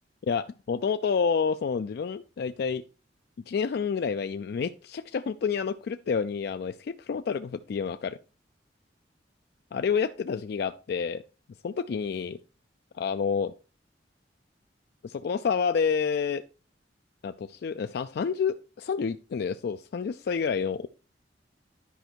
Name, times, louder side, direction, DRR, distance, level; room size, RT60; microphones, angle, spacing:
voice 1, 0.3-2.8 3.5-8.2 9.7-11.2 11.6-12.4 13.0-13.5 15.0-16.4 17.2-20.9, left 6 dB, 60° left, 10 dB, 0.3 m, -29 dB
10.0 x 5.2 x 4.5 m, 0.34 s
head